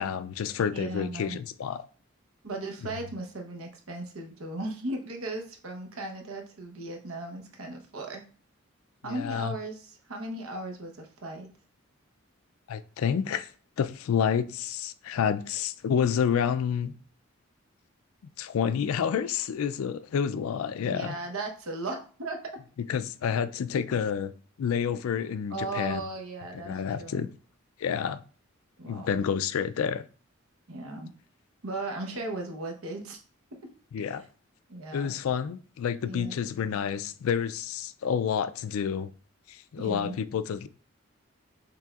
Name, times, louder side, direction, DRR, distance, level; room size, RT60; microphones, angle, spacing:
voice 1, 0.0-1.8 9.1-9.6 12.7-13.5 13.8-16.9 18.4-21.2 22.9-24.3 24.6-26.0 26.6-27.3 27.8-28.2 28.8-30.0 33.9-34.2 34.9-39.1 39.5-40.7, left 7 dB, 80° left, 0.3 m, -29 dB
voice 2, 0.7-1.4 2.4-8.2 9.0-11.5 20.8-22.4 25.5-27.3 28.8-29.1 30.7-31.1 31.6-33.2 34.2-34.3 34.7-35.2 36.1-36.3 39.8-40.2, right 2 dB, 80° right, 1.0 m, -37 dB
5.8 x 3.4 x 2.4 m
head